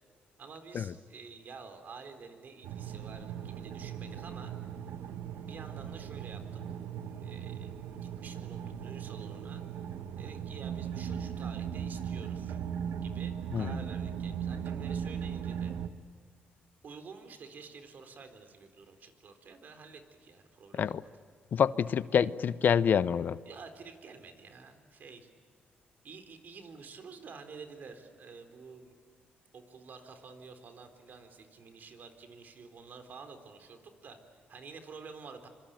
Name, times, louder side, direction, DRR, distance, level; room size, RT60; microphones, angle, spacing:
voice 1, 0.4-4.6 4.9-5.0 5.4-6.6 7.2-7.7 8.2-9.6 10.1-12.6 13.0-15.8 16.8-21.1 23.4-25.3 26.0-29.0 29.5-35.5, right 5 dB, 55° right, 4.0 m, -49 dB
sound 1, 2.6-15.9, right 8 dB, 85° right, 1.1 m, -38 dB
voice 2, 21.5-23.4, left 7 dB, 60° left, 0.7 m, -27 dB
26.0 x 24.5 x 9.0 m
cardioid pair, 90°, 4 cm